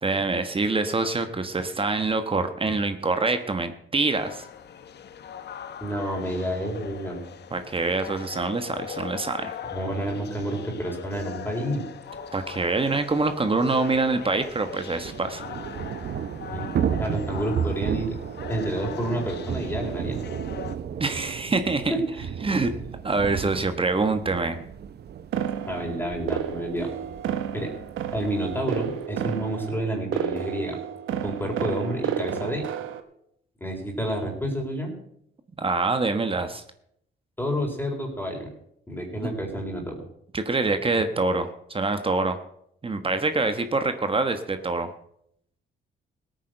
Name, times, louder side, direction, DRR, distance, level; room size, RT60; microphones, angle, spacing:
voice 1, 0.0-4.4 7.5-9.6 12.3-15.4 21.0-21.9 22.4-22.7 23.0-24.6 35.6-36.6 39.2-39.4 40.3-42.4 42.8-44.9, right 3 dB, 25° right, 8 dB, 1.3 m, -25 dB
sound 1, 4.1-20.8, left 8 dB, 60° left, 1.1 m, -40 dB
voice 2, 5.8-7.2 9.7-11.8 16.5-16.7 16.9-18.2 18.5-20.2 21.9-22.0 25.7-26.9 27.5-27.7 28.1-30.8 31.2-32.7 33.6-34.9 37.4-38.5 38.9-40.0, right 1 dB, 10° left, 0 dB, 4.1 m, -29 dB
Thunder / Rain, 12.5-12.6 12.8-12.9 13.2-29.1, right 8 dB, 55° right, 0.8 m, -34 dB
sound 2, 25.3-33.0, right 9 dB, 85° right, 1.3 m, -31 dB
16.5 x 9.2 x 6.7 m, 0.72 s
cardioid pair, 90°, 20 cm